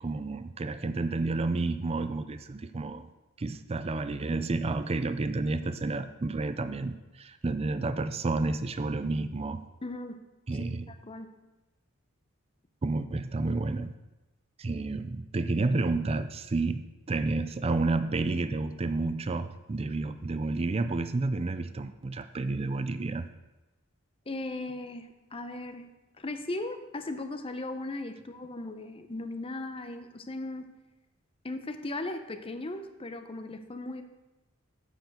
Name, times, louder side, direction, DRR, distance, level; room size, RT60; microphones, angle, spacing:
voice 1, 0.0-3.1 3.4-9.6 10.5-10.9 12.8-13.9 14.6-23.3, right 3 dB, 30° right, 11 dB, 0.4 m, -30 dB
voice 2, 9.8-10.2 10.6-10.7 11.0-11.3 24.3-25.9 26.2-30.7 31.4-34.0, left 2 dB, 30° left, 8 dB, 0.7 m, -37 dB
9.1 x 5.1 x 6.5 m, 1.0 s
head